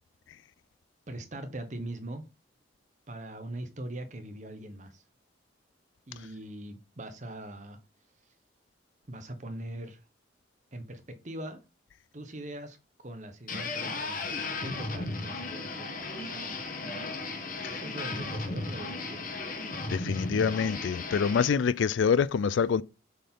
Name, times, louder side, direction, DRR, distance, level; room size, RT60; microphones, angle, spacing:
voice 1, 1.1-2.2 3.1-5.0 6.1-7.8 9.1-10.0 10.7-11.6 12.1-12.8 13.0-16.6 17.6-19.3, right 1 dB, 40° right, 1.1 m, -41 dB
sound 1, 13.5-21.5, left 3 dB, 45° left, 1.2 m, -35 dB
voice 2, 19.9-22.8, left 6 dB, 75° left, 0.4 m, -26 dB
6.4 x 4.3 x 3.8 m
head